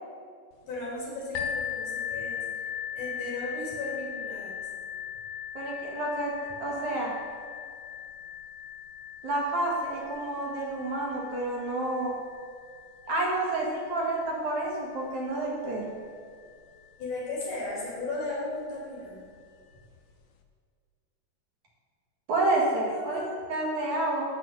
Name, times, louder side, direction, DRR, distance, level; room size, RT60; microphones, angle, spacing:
voice 1, 0.7-2.4 2.9-4.6 17.0-19.3 22.7-23.5, left 2 dB, 60° left, -5 dB, 4.4 m, -36 dB
sound 1, 1.3-16.9 17.7-17.8 18.3-18.4, left 8 dB, 85° left, 1.5 m, -39 dB
voice 2, 5.5-6.3 6.6-7.1 9.2-12.2 13.1-16.0 22.3-23.2 23.5-24.2, right 2 dB, 60° right, -3 dB, 2.6 m, -29 dB
12.0 x 4.7 x 8.2 m, 2.1 s
omnidirectional pair, 4.1 m